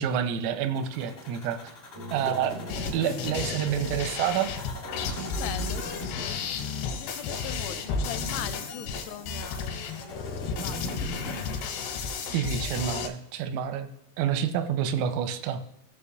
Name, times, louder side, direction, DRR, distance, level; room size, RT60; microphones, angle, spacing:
voice 1, 0.0-1.6 2.1-2.6 2.9-4.5 12.3-13.9 14.2-15.6, right 8 dB, 85° right, 8 dB, 3.2 m, -28 dB
sound 1, 0.8-11.4, equal, 50° left, 1.4 m, -41 dB
sound 2, 1.9-7.2, left 3 dB, 25° right, 0.6 m, -46 dB
sound 3, 2.7-13.1, left 5 dB, 70° left, 3.6 m, -33 dB
voice 2, 5.2-11.0, left 13 dB, 85° left, 10 dB, 3.2 m, -41 dB
19.0 x 6.9 x 2.4 m, 0.76 s
omnidirectional pair, 5.9 m